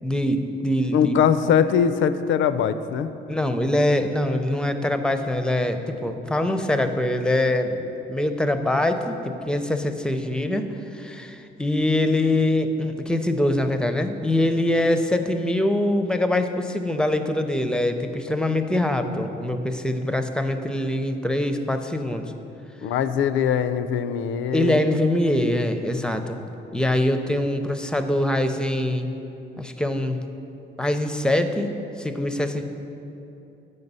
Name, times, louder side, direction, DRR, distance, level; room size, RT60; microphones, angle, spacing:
voice 1, 0.0-1.2 3.3-10.7 10.9-22.3 24.5-26.4 26.7-29.1 29.6-30.2 30.8-31.7 32.0-32.6, left 1 dB, 5° left, 7 dB, 0.5 m, -23 dB
voice 2, 0.9-3.1 22.8-24.8, left 8 dB, 75° left, 12 dB, 0.4 m, -21 dB
8.0 x 5.4 x 5.4 m, 2.9 s
cardioid pair, 90°, 20 cm